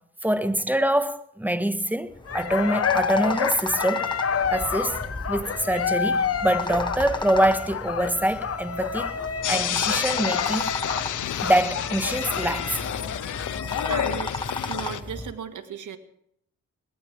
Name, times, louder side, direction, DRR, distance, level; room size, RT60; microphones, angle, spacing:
voice 1, 0.2-4.1 4.5-5.0 5.3-9.2 9.5-12.8, right 1 dB, 5° right, 1.5 m, -25 dB
sound 1, 2.1-15.3, left 2 dB, 15° left, 1.7 m, -35 dB
sound 2, 2.3-14.1, left 6 dB, 45° left, 1.3 m, -29 dB
sound 3, 9.4-15.0, left 11 dB, 65° left, 1.0 m, -30 dB
voice 2, 13.9-14.4 14.7-16.0, right 8 dB, 65° right, 2.0 m, -35 dB
19.5 x 17.5 x 3.5 m
supercardioid pair, 65°, 33 cm